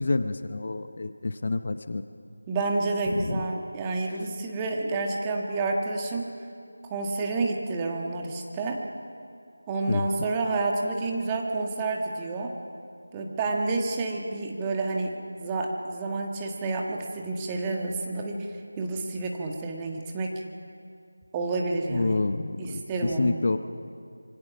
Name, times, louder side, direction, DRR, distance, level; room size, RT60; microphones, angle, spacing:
voice 1, 0.0-2.0 3.1-3.4 9.9-10.1 21.9-23.6, left 3 dB, 45° left, 10 dB, 0.9 m, -28 dB
voice 2, 2.5-6.3 6.9-8.8 9.7-12.5 13.1-15.1 15.4-18.5 18.8-20.3 21.3-22.2 22.6-23.4, right 3 dB, 15° right, 1 dB, 1.6 m, -29 dB
26.0 x 24.0 x 6.1 m, 2.4 s
figure-of-eight pair, 165°, 0 cm